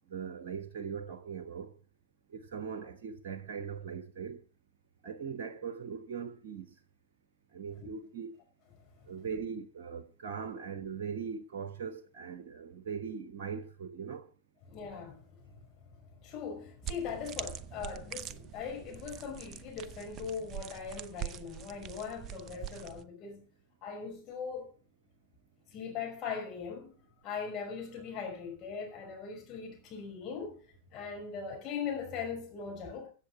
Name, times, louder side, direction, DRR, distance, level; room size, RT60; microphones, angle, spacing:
voice 1, 0.1-1.7 2.3-4.4 5.0-6.7 7.5-8.3 9.1-14.3, right 6 dB, 55° right, 1.2 m, -40 dB
voice 2, 14.7-15.5 16.2-23.5 23.8-24.7 25.7-26.9 27.2-30.6 30.9-33.1, left 6 dB, 35° left, 5.8 m, -40 dB
sound 1, 16.8-23.0, right 10 dB, 30° right, 0.7 m, -43 dB
15.5 x 7.7 x 6.1 m
figure-of-eight pair, 90°, 0 cm